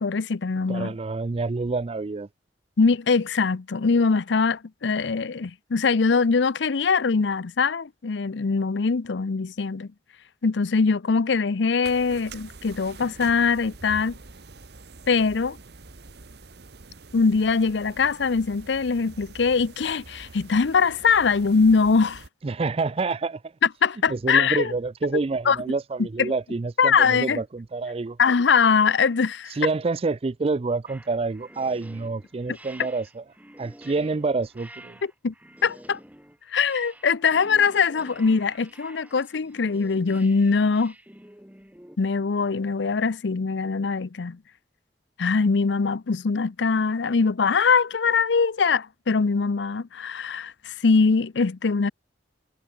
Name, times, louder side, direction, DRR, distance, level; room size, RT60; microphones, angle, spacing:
voice 1, 0.0-0.9 2.8-9.9 10.4-14.2 15.1-15.6 17.1-22.2 23.8-24.7 25.5-25.6 26.2-26.3 26.8-27.4 28.2-29.5 35.2-35.3 35.6-36.0 36.5-40.9 42.0-44.4 45.2-51.9, left 5 dB, 75° left, 0.6 m, -22 dB
voice 2, 0.7-2.3 22.4-23.4 24.1-28.2 29.5-33.2 33.6-35.0, right 3 dB, 30° right, 0.4 m, -27 dB
sound 1, 11.8-22.3, right 3 dB, 60° right, 1.3 m, -45 dB
sound 2, 30.9-42.0, right 1 dB, 10° right, 6.7 m, -48 dB
head